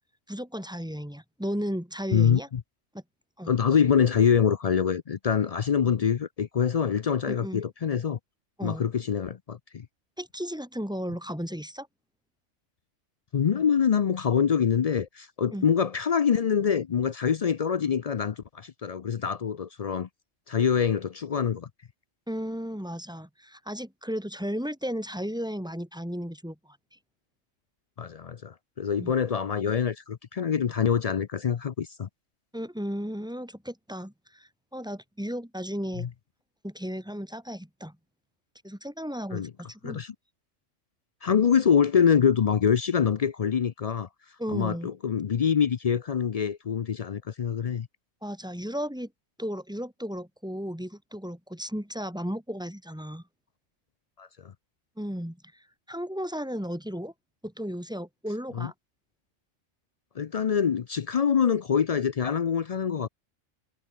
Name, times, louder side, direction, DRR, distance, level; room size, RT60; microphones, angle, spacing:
voice 1, 0.3-2.5 2.9-3.0 3.4-3.5 7.3-7.6 8.6-8.9 10.2-11.9 15.5-15.7 22.3-27.0 29.0-29.1 32.5-36.1 36.6-38.0 38.6-40.0 44.4-44.9 48.2-49.1 49.4-53.2 55.0-57.1 57.4-58.7, equal, 5° right, 1.8 m, -34 dB
voice 2, 2.1-2.6 3.5-8.2 8.6-9.9 13.3-20.1 20.5-21.7 28.0-32.1 36.0-36.1 39.3-39.5 39.8-40.1 41.2-44.1 44.5-47.9 54.2-54.3 58.5-58.7 60.2-63.1, left 7 dB, 60° left, 0.4 m, -25 dB
omnidirectional pair, 1.3 m